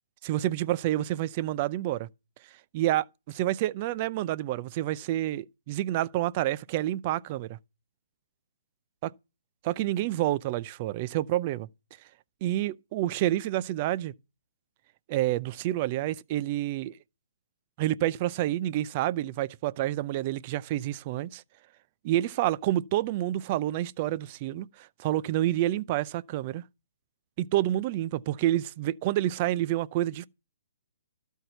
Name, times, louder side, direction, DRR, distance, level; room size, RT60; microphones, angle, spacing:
voice 1, 0.2-2.1 2.7-7.6 9.0-9.1 9.6-11.7 12.4-14.1 15.1-17.0 17.8-21.4 22.0-26.6 27.4-30.3, right 14 dB, 35° right, 0.5 m, -28 dB
12.5 x 4.6 x 7.9 m
hypercardioid pair, 150°, 0 cm